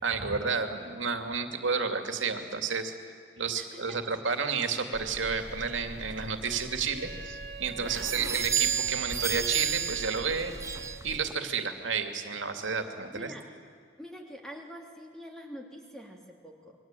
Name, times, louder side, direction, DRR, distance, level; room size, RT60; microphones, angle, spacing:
voice 1, 0.0-2.9 3.4-10.5 11.0-13.3, right 5 dB, 90° right, 6 dB, 2.5 m, -31 dB
voice 2, 3.5-4.0 7.7-8.3 13.1-13.4 14.0-16.8, equal, 5° left, 0 dB, 3.1 m, -45 dB
sound 1, 4.9-11.3, right 7 dB, 15° right, 0.6 m, -34 dB
Wind instrument woodwind instrument, 6.4-11.1, right 4 dB, 60° right, 1.8 m, -44 dB
27.5 x 22.5 x 9.2 m, 2.2 s
head